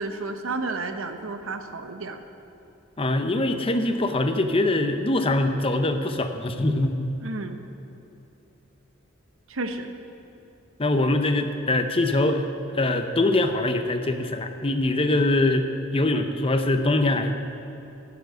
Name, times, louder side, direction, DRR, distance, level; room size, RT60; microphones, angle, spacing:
voice 1, 0.0-2.2 7.2-7.6 9.5-9.9, right 3 dB, 85° right, 7 dB, 0.9 m, -31 dB
voice 2, 3.0-7.1 10.8-12.4 12.7-17.3, left 2 dB, 30° left, 7 dB, 0.7 m, -23 dB
11.5 x 7.1 x 8.0 m, 3.0 s
head